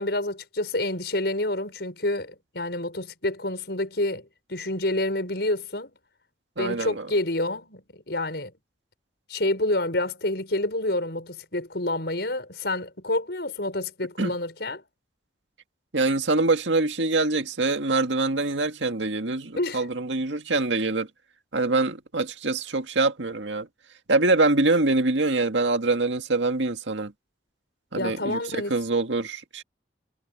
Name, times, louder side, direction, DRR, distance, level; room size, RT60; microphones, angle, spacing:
voice 1, 0.0-5.9 6.6-8.5 9.3-14.8 19.6-19.9 27.9-28.7, left 1 dB, 65° left, 5.7 m, -28 dB
voice 2, 6.6-7.1 14.2-14.3 15.9-21.1 21.5-23.7 24.1-27.1 27.9-29.6, right 3 dB, 90° right, 2.0 m, -24 dB
head